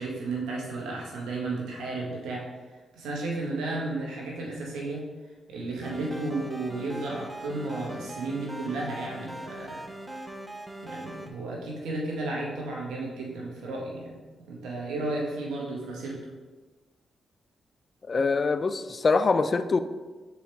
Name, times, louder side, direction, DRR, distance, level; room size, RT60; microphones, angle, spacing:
voice 1, 0.0-2.4 2.9-5.0 5.5-9.8 10.8-14.1 14.5-16.2, right 2 dB, 90° right, -3 dB, 1.5 m, -33 dB
sound 1, 5.8-11.3, right 1 dB, 15° right, 0.9 m, -41 dB
voice 2, 18.1-19.8, left 4 dB, 45° left, 11 dB, 0.4 m, -24 dB
6.3 x 4.6 x 3.5 m, 1.3 s
supercardioid pair, 55°, 0 cm